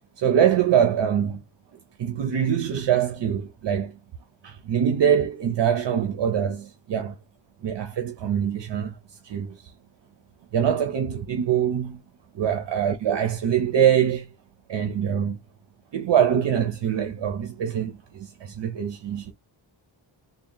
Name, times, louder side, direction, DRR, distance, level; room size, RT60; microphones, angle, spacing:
voice 1, 0.2-1.4 2.0-4.0 4.4-7.2 7.6-9.7 10.5-12.0 12.4-14.3 14.7-15.4 15.9-19.3, right 9 dB, 60° right, 0.6 m, -24 dB
3.6 x 2.2 x 3.7 m
wide cardioid pair, 170°, 49 cm